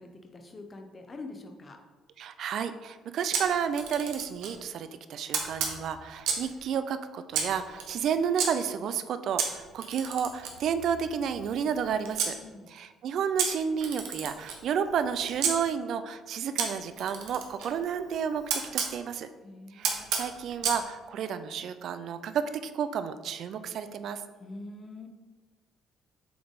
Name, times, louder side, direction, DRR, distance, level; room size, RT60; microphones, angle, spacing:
voice 1, 0.0-1.8 12.4-12.7 19.4-20.1 24.4-25.1, left 2 dB, 30° left, 4 dB, 0.9 m, -45 dB
voice 2, 2.2-12.3 12.7-19.3 19.7-24.2, right 7 dB, 65° right, 11 dB, 0.4 m, -31 dB
Camera, 3.3-4.6 5.3-6.6 7.3-8.5 9.4-12.3 13.4-15.5 16.6-18.9 19.8-20.8, right 6 dB, 85° right, 1.0 m, -33 dB
7.7 x 3.4 x 4.0 m, 1.3 s
cardioid pair, 95°, 0 cm